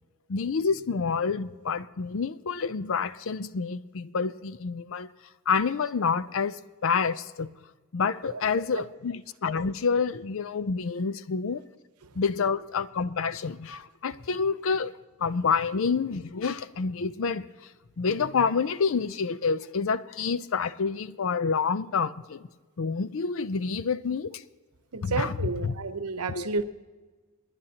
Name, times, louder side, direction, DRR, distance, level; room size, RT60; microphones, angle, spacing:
voice 1, 0.3-5.1 5.5-7.5 7.9-11.6 12.2-14.9 15.2-17.4 18.0-22.4 22.8-24.4 25.0-25.4 25.6-25.7 26.3-26.5, left 5 dB, 60° left, 0.5 m, -28 dB
voice 2, 24.9-26.6, right 4 dB, 85° right, 0.9 m, -31 dB
29.0 x 10.5 x 2.9 m
head